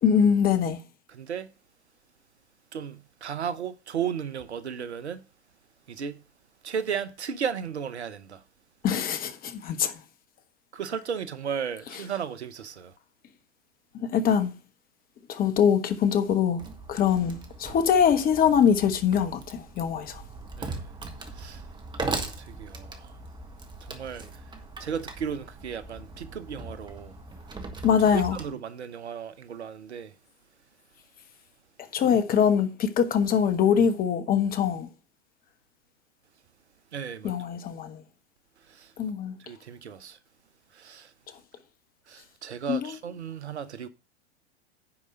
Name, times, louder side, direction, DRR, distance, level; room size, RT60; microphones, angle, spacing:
voice 1, 0.0-0.8 8.8-9.9 13.9-14.5 15.3-16.6 16.9-20.2 27.8-28.4 31.9-34.9 37.2-38.0 39.0-39.4 42.7-42.9, left 7 dB, 25° left, 1.3 m, -23 dB
voice 2, 1.1-1.5 2.7-5.2 5.9-6.2 6.6-8.4 10.7-12.9 20.6-20.8 21.3-21.6 22.1-23.1 23.8-24.2 24.8-27.1 28.1-30.1 32.0-32.1 36.9-37.3 38.7-38.9 39.4-40.2 40.7-41.1 42.1-43.9, right 7 dB, 75° right, 0.9 m, -35 dB
Wood, 16.6-28.5, right 3 dB, 15° right, 1.5 m, -39 dB
9.9 x 4.9 x 6.5 m
figure-of-eight pair, 95°, 34 cm